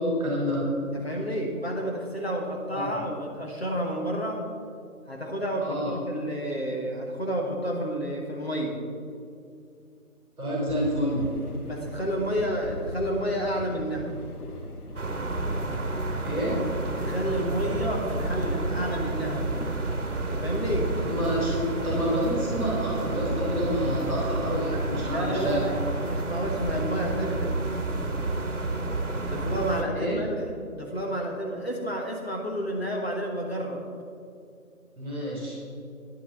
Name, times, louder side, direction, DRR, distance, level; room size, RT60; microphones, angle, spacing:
voice 1, 0.0-0.7 2.7-2.9 5.6-5.9 10.4-11.3 16.2-16.8 20.9-25.6 29.9-30.2 35.0-35.6, equal, 5° right, -24 dB, 2.0 m, -28 dB
voice 2, 0.9-4.5 5.1-8.8 11.7-14.1 17.0-19.5 20.3-20.9 25.1-27.6 29.2-30.4 30.7-33.8, equal, 45° left, 0 dB, 1.4 m, -30 dB
sound 1, 10.7-26.3, equal, 80° left, 1.4 m, -40 dB
sound 2, 15.0-29.8, right 2 dB, 55° right, 1.4 m, -30 dB
10.5 x 6.6 x 6.7 m, 2.4 s
figure-of-eight pair, 180°, 44 cm